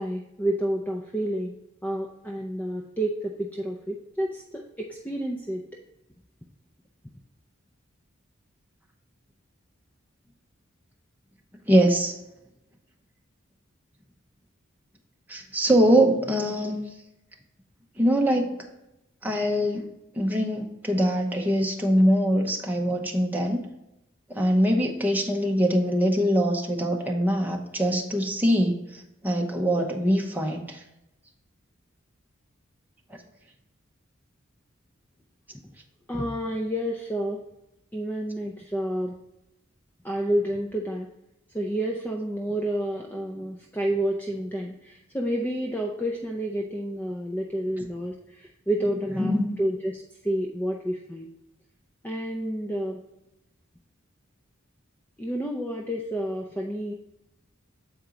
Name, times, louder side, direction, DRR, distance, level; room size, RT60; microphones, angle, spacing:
voice 1, 0.0-1.5 1.8-5.6 36.1-37.4 37.9-39.2 40.0-41.1 41.5-51.3 52.0-53.0 55.2-56.9, right 1 dB, 10° left, 0 dB, 0.5 m, -29 dB
voice 2, 11.7-12.1 15.3-16.8 18.0-18.5 19.2-19.9 20.1-23.6 24.3-30.8 33.1-33.2 49.1-49.5, equal, 10° right, 1 dB, 0.9 m, -23 dB
8.2 x 4.4 x 3.8 m, 0.89 s
head